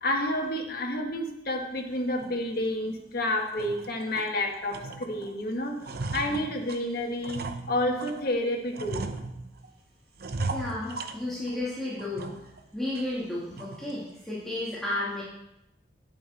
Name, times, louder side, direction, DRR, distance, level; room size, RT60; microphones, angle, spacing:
voice 1, 0.0-5.7 6.1-9.0, left 1 dB, 60° left, 1 dB, 1.5 m, -30 dB
sound 1, 2.2-2.4 2.9-3.0 3.4-4.3 4.7-5.3 5.6-8.2 8.7-9.7 10.2-11.6 12.0-12.6 13.0-13.1 13.6-13.9, right 3 dB, 60° right, 0.7 m, -37 dB
voice 2, 10.5-12.3 12.7-15.2, left 1 dB, ahead, -9 dB, 2.2 m, -33 dB
8.9 x 8.5 x 4.2 m, 0.88 s
head